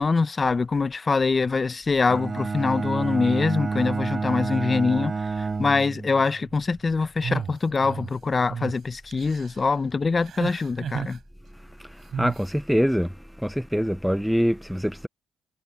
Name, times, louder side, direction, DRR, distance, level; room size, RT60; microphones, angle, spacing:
voice 1, 0.0-11.2, left 4 dB, 30° left, 0.8 m, -24 dB
Bowed string instrument, 2.1-6.3, right 4 dB, 30° right, 5.7 m, -29 dB
sound 1, 7.2-8.1 8.5-8.7 9.1-9.6 10.2-11.2 12.1-12.5, right 8 dB, 55° right, 7.9 m, -33 dB
voice 2, 12.2-13.1 13.4-15.1, equal, ahead, 0.5 m, -24 dB
cardioid pair, 90°, 0 cm